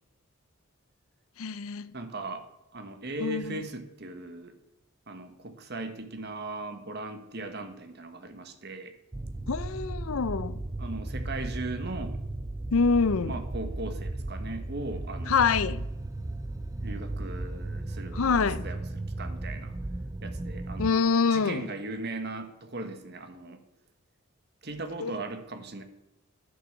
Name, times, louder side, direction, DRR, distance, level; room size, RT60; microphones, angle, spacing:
voice 1, 1.4-1.9 3.2-3.6 9.5-10.6 12.7-13.4 15.3-15.9 18.1-18.6 20.8-21.7 25.0-25.1, left 5 dB, 75° left, 0.5 m, -26 dB
voice 2, 1.9-2.4 2.7-4.5 5.1-8.9 10.8-12.2 13.2-15.5 16.8-19.7 20.2-23.6 24.6-25.8, right 2 dB, 50° right, 1.3 m, -38 dB
sound 1, 9.1-20.9, right 2 dB, 15° right, 0.3 m, -35 dB
11.0 x 6.5 x 7.2 m
head